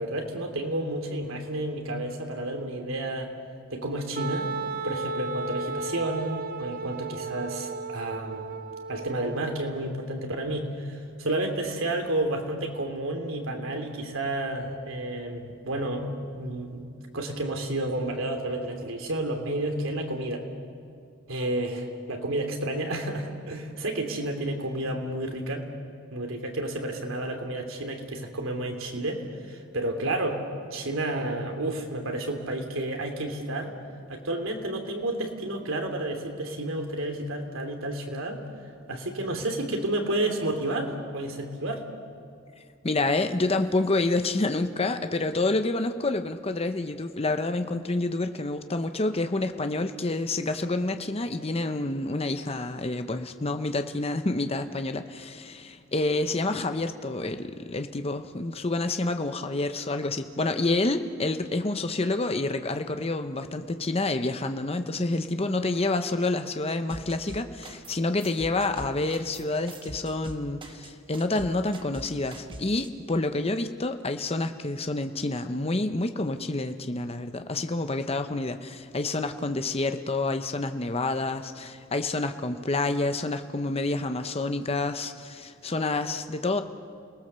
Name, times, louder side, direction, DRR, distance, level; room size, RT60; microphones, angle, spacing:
voice 1, 0.0-3.3 3.7-4.5 4.8-8.5 8.9-16.8 17.1-20.5 21.3-25.7 26.1-30.4 30.7-33.7 34.1-38.4 38.9-41.8, right 1 dB, 80° right, 4 dB, 3.0 m, -31 dB
Wind instrument woodwind instrument, 4.2-9.8, right 3 dB, 45° right, 0.8 m, -35 dB
voice 2, 42.8-86.6, left 2 dB, 30° left, 8 dB, 0.9 m, -28 dB
sound 1, 66.9-67.9 68.2-72.9, right 1 dB, 25° right, 1.4 m, -43 dB
29.5 x 19.0 x 6.9 m, 2.3 s
head